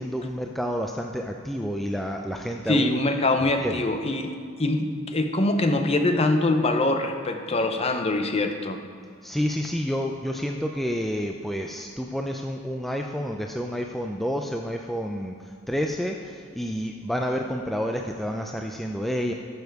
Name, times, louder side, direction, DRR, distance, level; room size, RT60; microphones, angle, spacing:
voice 1, 0.0-3.0 3.4-3.8 9.2-15.4 15.7-19.3, equal, ahead, 2 dB, 0.4 m, -29 dB
voice 2, 2.7-4.3 4.6-8.8, left 2 dB, 30° left, 6 dB, 0.7 m, -23 dB
12.0 x 7.0 x 4.7 m, 2.2 s
head